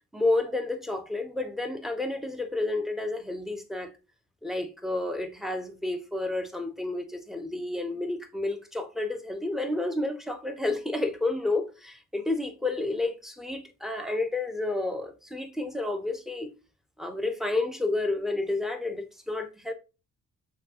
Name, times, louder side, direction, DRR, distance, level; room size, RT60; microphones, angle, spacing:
voice 1, 0.1-3.9 4.4-16.5 17.0-19.7, left 2 dB, ahead, 0.6 m, -30 dB
5.6 x 2.3 x 2.8 m
cardioid pair, 90°, 30 cm